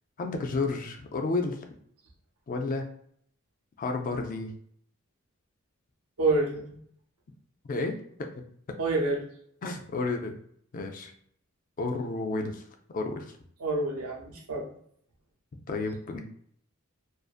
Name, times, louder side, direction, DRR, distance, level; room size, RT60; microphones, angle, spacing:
voice 1, 0.2-1.6 2.5-2.9 3.8-4.5 7.7-8.4 9.6-10.4 10.7-11.1 11.8-12.6 12.9-13.3 15.7-16.2, left 3 dB, 40° left, 5 dB, 0.3 m, -31 dB
voice 2, 6.2-6.8 8.8-9.3 13.6-14.7, right 2 dB, 80° right, 0 dB, 0.7 m, -28 dB
2.5 x 2.4 x 2.4 m, 0.65 s
head